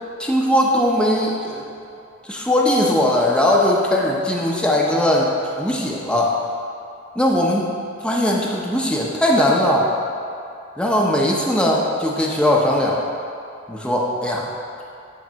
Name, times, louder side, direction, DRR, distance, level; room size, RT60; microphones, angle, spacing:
voice 1, 0.2-1.6 2.2-5.3 5.6-6.3 7.2-7.7 8.0-9.9 10.8-13.0 13.7-14.5, left 1 dB, 5° left, -3 dB, 0.6 m, -19 dB
8.9 x 3.3 x 6.0 m, 2.6 s
head